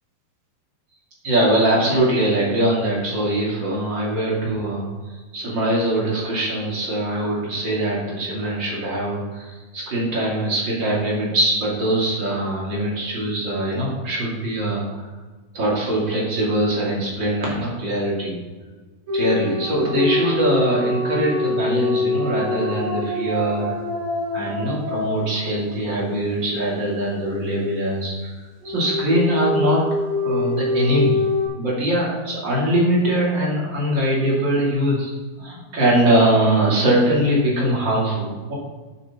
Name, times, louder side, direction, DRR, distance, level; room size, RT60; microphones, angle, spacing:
voice 1, 1.2-15.1 15.5-18.4 19.1-23.8 24.3-28.3 28.6-29.8 30.2-31.2 31.6-35.1 35.4-38.5, right 1 dB, 35° right, -5 dB, 2.5 m, -22 dB
sound 1, 19.1-26.0 28.6-31.5, left 2 dB, 60° right, 4.0 m, -25 dB
10.5 x 6.4 x 4.2 m, 1.3 s
omnidirectional pair, 4.6 m